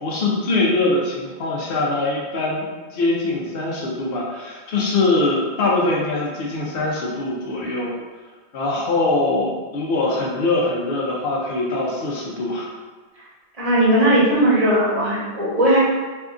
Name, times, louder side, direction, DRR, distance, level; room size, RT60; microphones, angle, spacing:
voice 1, 0.0-2.6 2.9-7.9 8.5-12.7, left 2 dB, 70° left, -3 dB, 0.8 m, -22 dB
voice 2, 13.6-15.8, right 1 dB, 40° right, -7 dB, 0.8 m, -17 dB
2.7 x 2.4 x 2.4 m, 1.3 s
omnidirectional pair, 1.0 m